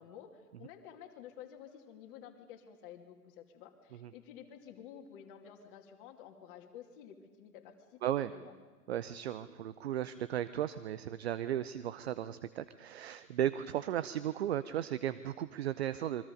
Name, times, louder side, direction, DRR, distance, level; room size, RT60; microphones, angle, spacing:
voice 1, 0.0-8.5, left 9 dB, 35° left, 4 dB, 2.5 m, -52 dB
voice 2, 8.9-16.3, right 11 dB, 45° right, 14 dB, 0.7 m, -35 dB
27.5 x 23.0 x 5.3 m, 1.4 s
figure-of-eight pair, 110°, 45 cm